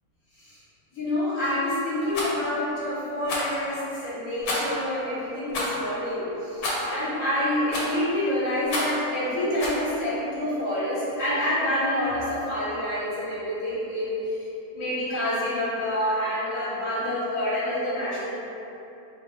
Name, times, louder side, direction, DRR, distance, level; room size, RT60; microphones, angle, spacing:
voice 1, 0.9-14.1 14.7-18.4, left 1 dB, 60° left, -11 dB, 1.5 m, -27 dB
Rattle, 2.1-2.3 3.2-3.6 4.4-4.8 5.5-5.8 6.6-6.9 7.7-8.0 8.7-9.0 9.6-9.8, left 1 dB, 90° left, 1.3 m, -29 dB
4.0 x 2.5 x 3.3 m, 2.9 s
omnidirectional pair, 1.6 m